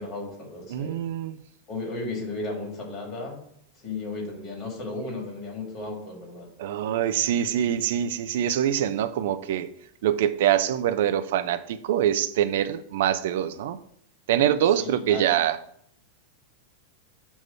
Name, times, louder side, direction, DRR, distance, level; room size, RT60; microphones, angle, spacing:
voice 1, 0.0-1.0 1.7-3.4 3.8-6.5 7.2-7.3 7.6-7.7 14.8-15.3, left 2 dB, 35° left, 1 dB, 2.1 m, -35 dB
voice 2, 0.7-1.4 6.6-9.7 10.0-13.8 14.3-15.6, right 10 dB, 55° right, 12 dB, 0.4 m, -24 dB
7.0 x 3.0 x 5.7 m, 0.67 s
figure-of-eight pair, 90°, 0 cm